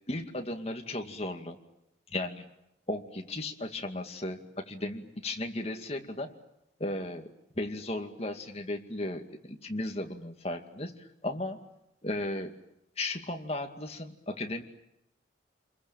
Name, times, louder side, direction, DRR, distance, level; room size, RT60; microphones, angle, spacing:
voice 1, 0.1-1.6 2.1-2.5 2.9-6.3 6.8-7.3 7.6-11.6 12.0-12.5 13.0-14.6, left 1 dB, 35° left, 4 dB, 2.3 m, -35 dB
29.0 x 22.5 x 9.0 m, 0.83 s
head